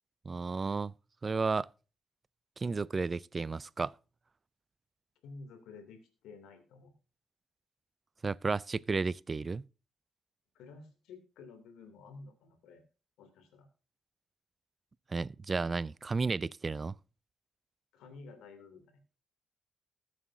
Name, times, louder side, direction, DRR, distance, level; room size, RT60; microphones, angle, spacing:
voice 1, 0.3-0.9 1.2-1.7 2.6-3.9 8.2-9.6 15.1-16.9, right 4 dB, 35° right, 0.4 m, -33 dB
voice 2, 5.2-6.9 10.5-12.8 13.2-13.7 17.9-19.0, left 4 dB, 70° left, 2.7 m, -51 dB
20.5 x 7.5 x 2.7 m
hypercardioid pair, 40°, 0 cm